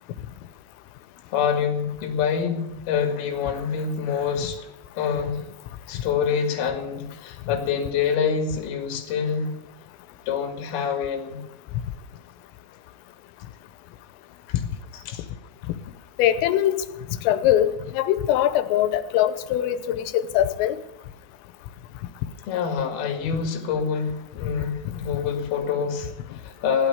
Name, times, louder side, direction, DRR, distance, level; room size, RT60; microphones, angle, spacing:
voice 1, 1.3-4.6 5.0-5.4 5.9-9.6 10.3-11.4 14.5-14.6 14.9-15.3 22.5-26.9, left 6 dB, 55° left, 4 dB, 3.4 m, -26 dB
voice 2, 16.2-16.9 17.2-20.8, left 11 dB, 90° left, 12 dB, 3.5 m, -22 dB
16.5 x 11.5 x 7.0 m, 0.94 s
omnidirectional pair, 5.9 m